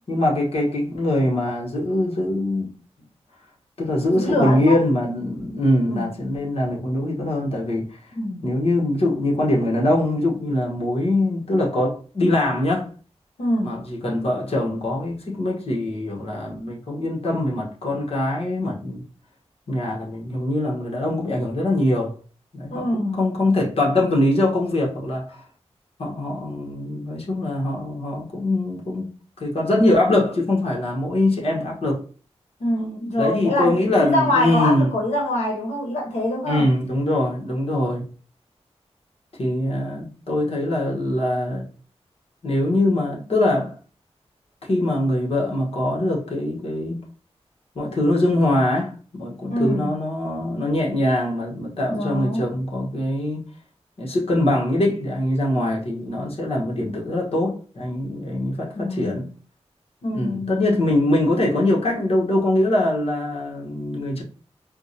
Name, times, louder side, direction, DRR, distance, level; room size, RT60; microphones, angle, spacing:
voice 1, 0.1-2.7 3.8-8.0 8.4-12.9 13.6-19.0 19.7-22.1 22.5-25.4 26.0-29.1 29.4-32.0 33.1-34.9 36.5-38.0 39.4-41.7 42.4-43.7 44.6-47.0 47.7-53.4 54.0-59.2 60.1-64.2, left 1 dB, 60° left, 1.1 m, -23 dB
voice 2, 4.2-4.8 5.9-6.1 8.1-8.4 13.4-13.8 22.7-23.2 32.6-36.7 49.5-49.9 51.9-52.5 58.7-59.3 60.0-60.5, left 1 dB, 90° left, 0.9 m, -24 dB
4.4 x 2.2 x 2.7 m
wide cardioid pair, 110°, 11 cm